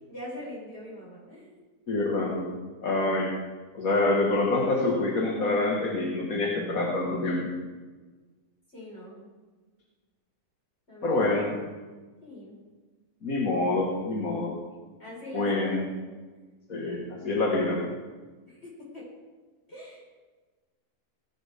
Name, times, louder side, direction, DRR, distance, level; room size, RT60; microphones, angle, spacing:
voice 1, 0.1-1.6 8.7-9.3 10.9-11.2 12.2-12.6 14.9-15.8 18.4-19.1 19.7-20.0, left 1 dB, 40° left, -6 dB, 5.2 m, -42 dB
voice 2, 1.9-2.5 2.8-3.3 3.7-7.6 11.0-11.6 13.2-14.5 15.3-15.9 16.7-17.9, left 2 dB, 60° left, -2 dB, 2.2 m, -26 dB
19.0 x 11.5 x 3.6 m, 1.3 s
omnidirectional pair, 1.6 m